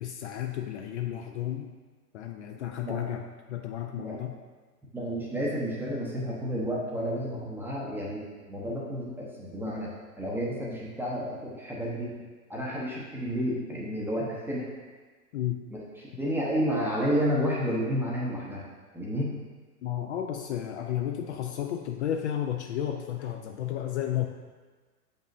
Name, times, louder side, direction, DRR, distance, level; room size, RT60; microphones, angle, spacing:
voice 1, 0.0-1.7 2.1-3.2 3.5-4.3 15.3-15.6 19.8-24.3, left 11 dB, 45° left, 3 dB, 0.5 m, -32 dB
voice 2, 4.9-12.1 12.5-14.7 15.7-18.7 18.9-19.3, equal, 5° right, -4 dB, 0.7 m, -31 dB
7.1 x 5.3 x 2.6 m, 1.4 s
figure-of-eight pair, 110°, 47 cm